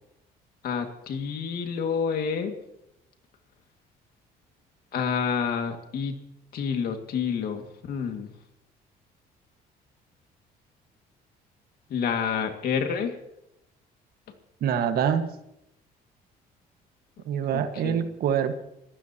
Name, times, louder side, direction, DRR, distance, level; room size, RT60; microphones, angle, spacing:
voice 1, 0.6-2.6 4.9-6.1 6.5-8.3 11.9-13.2 17.5-18.1, left 6 dB, 65° left, 5 dB, 2.1 m, -29 dB
voice 2, 14.6-15.3 17.3-18.6, right 8 dB, 65° right, 8 dB, 1.6 m, -25 dB
25.0 x 15.5 x 2.9 m, 0.81 s
cardioid pair, 110°, 17 cm